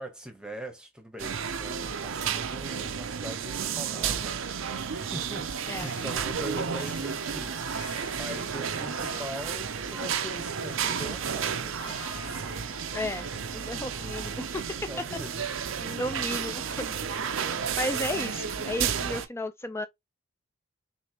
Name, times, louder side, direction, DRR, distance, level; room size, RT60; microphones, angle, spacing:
voice 1, 0.0-7.5 8.1-12.1 14.9-15.5, equal, 5° right, 1.0 m, -41 dB
sound 1, 1.2-19.3, right 7 dB, 65° right, 0.6 m, -32 dB
sound 2, 5.4-14.7, left 4 dB, 90° left, 0.9 m, -48 dB
voice 2, 12.9-14.6 15.8-17.0 17.8-19.9, left 1 dB, 10° left, 0.4 m, -34 dB
6.3 x 2.7 x 2.9 m
head